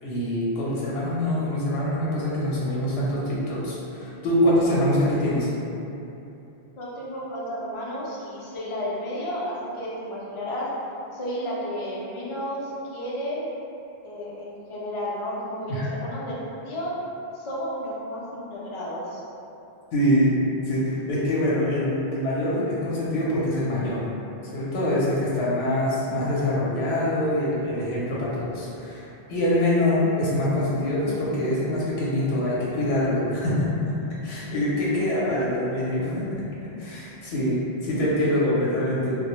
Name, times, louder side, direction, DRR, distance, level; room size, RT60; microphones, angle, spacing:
voice 1, 0.0-5.5 15.7-15.8 19.9-20.4 20.7-24.1 24.5-34.0 34.2-36.4 36.8-39.2, left 1 dB, 80° left, -7 dB, 0.8 m, -24 dB
voice 2, 6.8-10.7 11.1-13.5 14.0-16.9 17.3-19.2, equal, 50° left, -6 dB, 0.3 m, -32 dB
2.1 x 2.0 x 2.9 m, 2.8 s
omnidirectional pair, 1.0 m